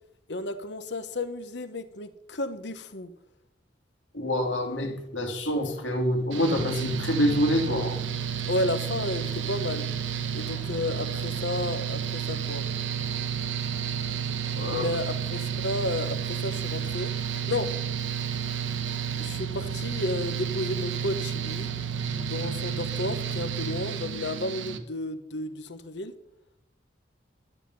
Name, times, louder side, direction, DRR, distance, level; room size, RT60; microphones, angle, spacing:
voice 1, 0.3-3.1 8.5-9.9 10.3-12.6 14.6-17.1 17.5-17.7 19.1-21.7 22.2-26.1, left 2 dB, 65° left, 11 dB, 1.1 m, -32 dB
voice 2, 4.1-8.0 14.6-14.8, left 1 dB, 80° left, 4 dB, 2.4 m, -26 dB
Mechanical fan, 6.3-24.8, right 8 dB, 80° right, 1.1 m, -31 dB
12.0 x 9.6 x 5.4 m, 0.78 s
head